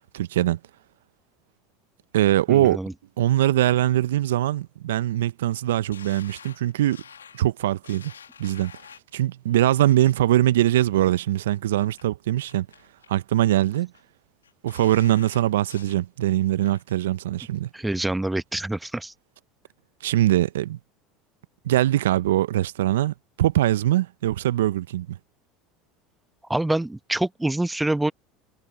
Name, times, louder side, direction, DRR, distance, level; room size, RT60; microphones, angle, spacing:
voice 1, 0.1-0.6 2.1-2.8 3.2-7.0 7.3-8.1 8.4-8.7 9.1-12.7 13.1-13.9 14.6-17.7 20.0-20.8 21.6-25.2, right 13 dB, 75° right, 0.8 m, -22 dB
voice 2, 2.5-2.9 17.7-19.1 26.5-28.1, right 1 dB, 10° right, 1.0 m, -26 dB
sound 1, 5.9-9.2 9.8-10.1 10.5-11.1 11.5-12.0 12.5-13.1 13.5-14.0 14.4-16.0 16.4-17.0 17.4-17.5, left 7 dB, 85° left, 2.1 m, -48 dB
hypercardioid pair, 75°, 0 cm